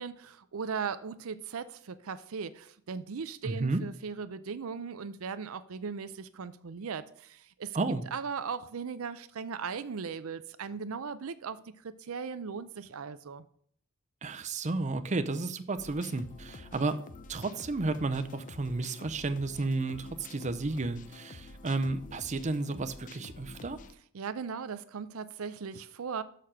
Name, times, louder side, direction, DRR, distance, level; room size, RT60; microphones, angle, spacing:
voice 1, 0.0-7.8 8.1-13.5 24.1-26.2, right 6 dB, 75° right, 0.5 m, -38 dB
voice 2, 3.4-3.8 7.7-8.0 14.2-17.0 17.3-23.8, right 3 dB, 35° right, 0.6 m, -32 dB
sound 1, 15.8-23.9, left 3 dB, 40° left, 0.6 m, -49 dB
6.6 x 6.4 x 5.7 m
head